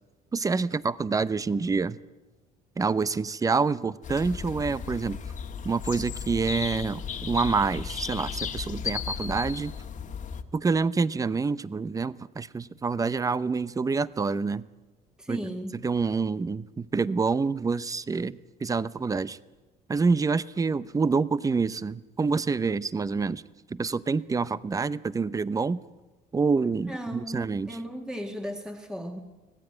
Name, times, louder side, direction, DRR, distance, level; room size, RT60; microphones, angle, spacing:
voice 1, 0.3-2.0 2.8-5.2 5.6-9.7 10.5-14.6 15.3-15.4 15.8-19.4 19.9-23.4 23.7-25.8 26.3-27.7, right 4 dB, 20° right, 17 dB, 0.7 m, -27 dB
sound 1, 4.0-10.4, left 7 dB, 50° left, 1.7 m, -35 dB
voice 2, 15.2-15.8 26.8-29.2, equal, 5° right, 4 dB, 1.9 m, -36 dB
25.0 x 17.5 x 9.0 m, 1.2 s
cardioid pair, 110°, 17 cm